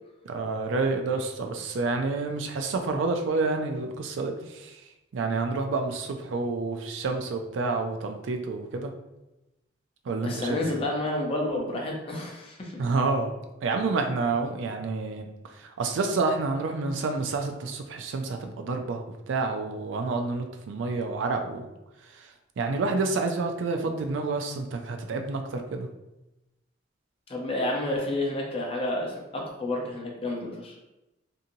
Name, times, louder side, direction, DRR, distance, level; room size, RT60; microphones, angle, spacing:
voice 1, 0.3-4.8 5.1-8.9 10.1-10.5 12.8-13.3 13.6-15.3 15.6-21.7 22.1-22.3 22.6-25.9, right 3 dB, 80° right, 5 dB, 0.4 m, -29 dB
voice 2, 10.2-12.8 27.3-30.7, left 1 dB, 30° left, -1 dB, 0.6 m, -30 dB
2.7 x 2.7 x 2.6 m, 0.97 s
head